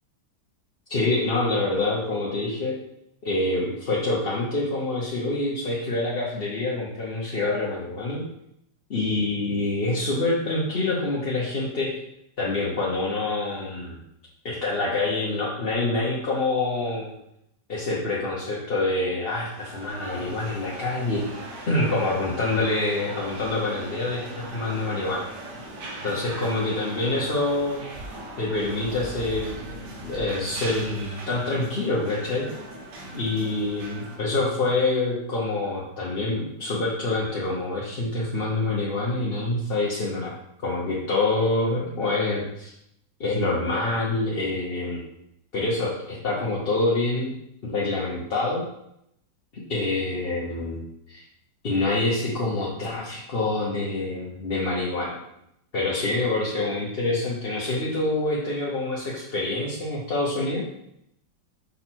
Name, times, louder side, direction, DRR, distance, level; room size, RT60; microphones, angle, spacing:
voice 1, 0.9-2.8 3.2-8.2 8.9-11.9 12.4-14.0 14.4-17.1 17.7-21.2 21.7-25.3 26.0-27.8 28.4-29.8 30.0-32.5 33.1-40.4 40.6-42.7 43.2-45.0 45.5-47.3 47.6-48.6 49.5-51.2 51.6-55.2 55.7-60.6, left 2 dB, 40° left, -5 dB, 1.0 m, -26 dB
sound 1, 19.2-34.2, right 1 dB, 70° right, 1.7 m, -39 dB
5.7 x 4.0 x 4.4 m, 0.79 s
omnidirectional pair, 1.9 m